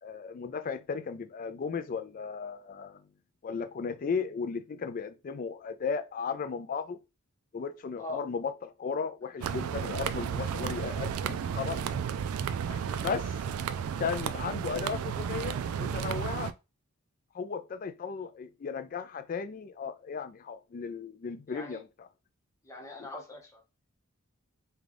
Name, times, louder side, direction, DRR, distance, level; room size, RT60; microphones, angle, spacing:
voice 1, 0.0-3.0 3.4-7.0 7.5-11.8 13.0-13.4 14.0-16.5 17.3-22.1 23.0-23.1, left 5 dB, 40° left, 0.3 m, -35 dB
sound 1, 9.4-16.5, right 7 dB, 80° right, 0.3 m, -33 dB
voice 2, 12.7-13.0 21.5-21.8 22.6-23.6, left 2 dB, 15° left, 0.8 m, -42 dB
3.7 x 2.3 x 3.2 m
head